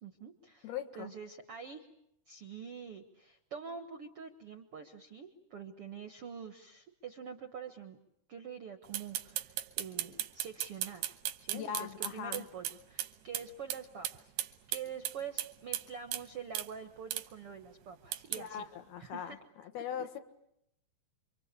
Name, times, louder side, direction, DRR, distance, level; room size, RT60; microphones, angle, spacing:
voice 1, 0.0-1.9 2.3-8.0 8.3-18.7 19.0-19.4 19.8-20.2, right 7 dB, 65° right, 7 dB, 1.4 m, -46 dB
voice 2, 0.6-1.1 11.5-12.5 18.3-20.2, left 9 dB, 70° left, 9 dB, 3.5 m, -40 dB
sound 1, 8.9-13.1 13.3-13.5 13.7-13.8 14.0-16.2 16.6-16.7 17.1-17.3 18.1-18.4, right 12 dB, 85° right, 3.3 m, -36 dB
28.0 x 24.5 x 8.3 m, 0.79 s
omnidirectional pair, 4.7 m